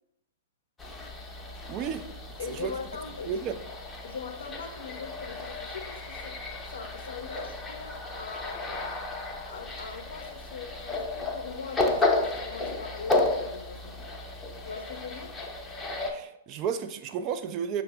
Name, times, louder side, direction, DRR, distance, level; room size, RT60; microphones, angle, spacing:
sound 1, 0.8-16.1, left 2 dB, 10° left, 0.6 m, -33 dB
voice 1, 1.7-2.1 2.5-2.8 3.3-3.6 16.1-17.8, right 7 dB, 35° right, 0.3 m, -32 dB
voice 2, 2.4-3.3 4.0-6.4 6.7-8.9 9.5-14.0 14.6-15.4, left 5 dB, 70° left, 0.5 m, -41 dB
5.6 x 2.0 x 3.4 m
figure-of-eight pair, 110°, 0 cm